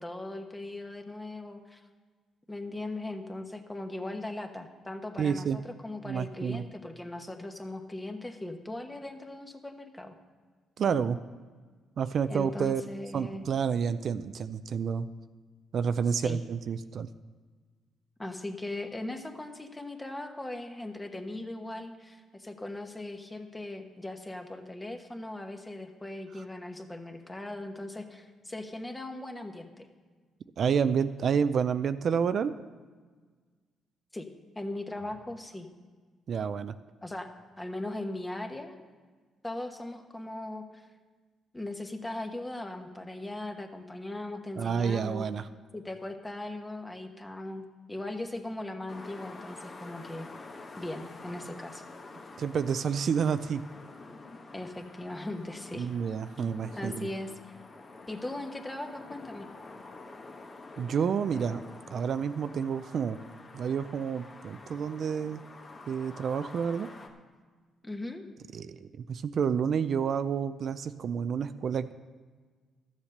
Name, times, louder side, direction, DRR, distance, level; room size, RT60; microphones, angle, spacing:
voice 1, 0.0-1.8 2.5-10.1 12.3-13.5 16.2-16.4 18.2-29.9 34.1-34.3 34.5-35.7 37.0-37.3 37.6-38.8 39.4-40.9 41.5-45.3 45.7-50.3 50.8-51.8 54.5-55.9 56.4-57.5 58.1-59.5 67.8-68.2, left 1 dB, 15° left, 5 dB, 1.2 m, -39 dB
voice 2, 5.2-5.6 6.0-6.6 10.8-11.2 12.0-12.8 13.1-15.1 15.7-17.1 30.6-32.5 36.3-36.7 44.6-45.5 52.4-53.6 55.8-57.1 60.8-61.6 61.9-63.2 63.5-65.4 65.9-66.9 68.5-71.9, right 7 dB, 55° right, 11 dB, 0.4 m, -29 dB
sound 1, 48.9-67.1, left 3 dB, 40° left, 1.3 m, -48 dB
13.0 x 7.2 x 6.5 m, 1.5 s
cardioid pair, 90°, 0 cm